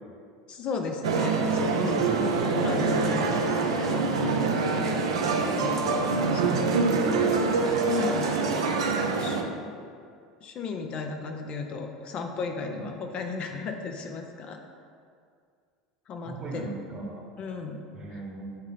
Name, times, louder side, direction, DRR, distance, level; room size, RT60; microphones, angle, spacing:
voice 1, 0.5-1.9 2.6-3.3 3.8-4.3 4.8-5.0 5.4-5.8 6.1-6.8 7.8-8.4 9.2-9.5 10.4-14.6 16.1-16.7 17.4-17.8 18.1-18.2, left 4 dB, 40° left, 4 dB, 0.5 m, -35 dB
sound 1, 1.0-9.4, right 4 dB, 70° right, 0.5 m, -25 dB
voice 2, 1.7-2.3 2.9-3.4 4.1-4.6 6.4-7.5 9.0-9.5 12.6-12.8 16.3-17.3 17.9-18.6, right 2 dB, 30° right, 0 dB, 1.1 m, -36 dB
8.9 x 3.5 x 3.6 m, 2.2 s
figure-of-eight pair, 75°, 3 cm